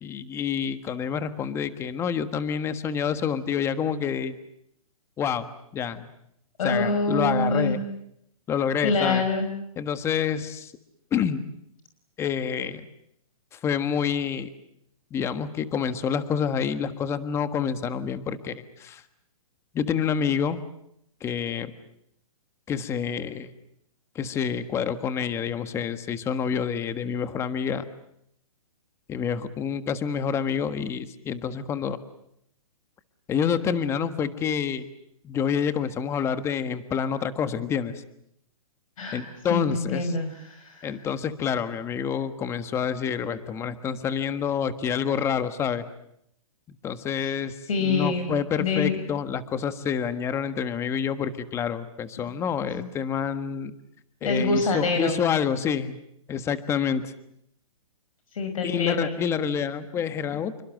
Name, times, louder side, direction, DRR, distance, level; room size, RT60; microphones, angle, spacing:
voice 1, 0.0-4.3 5.2-6.0 6.6-7.8 8.5-9.2 9.8-10.7 11.1-11.4 12.2-12.9 13.5-14.5 15.1-19.0 19.7-20.6 21.2-21.7 22.7-23.5 24.1-27.8 29.1-32.0 33.3-34.9 35.2-37.9 39.1-40.1 40.8-45.8 46.8-53.7 54.2-56.0 56.3-57.1 58.6-60.6, left 7 dB, 15° left, 12 dB, 1.4 m, -28 dB
voice 2, 6.6-7.8 8.8-9.5 39.0-39.2 39.5-41.0 47.2-47.3 47.7-48.3 48.6-49.0 52.7-52.9 54.2-55.2 58.3-59.2, left 3 dB, 65° left, 6 dB, 5.4 m, -26 dB
28.0 x 24.5 x 7.8 m, 0.76 s
hypercardioid pair, 155°, 19 cm